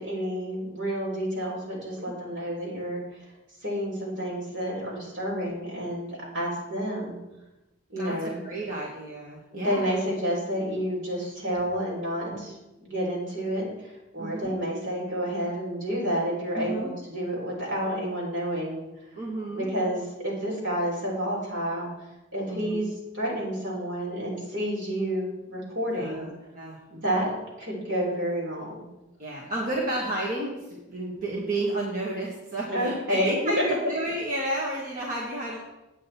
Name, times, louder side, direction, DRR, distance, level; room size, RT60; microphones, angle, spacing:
voice 1, 0.0-3.3 3.6-7.2 7.9-8.4 9.5-12.5 12.8-18.8 19.5-21.9 22.3-26.3 26.9-28.8 32.7-33.4, equal, 70° right, -4 dB, 4.1 m, -30 dB
voice 2, 8.0-10.0 12.3-12.4 14.2-14.5 16.6-16.9 19.2-19.7 22.5-22.8 26.0-26.8 29.2-35.6, right 1 dB, 45° right, -5 dB, 1.7 m, -32 dB
8.9 x 8.6 x 4.4 m, 0.99 s
head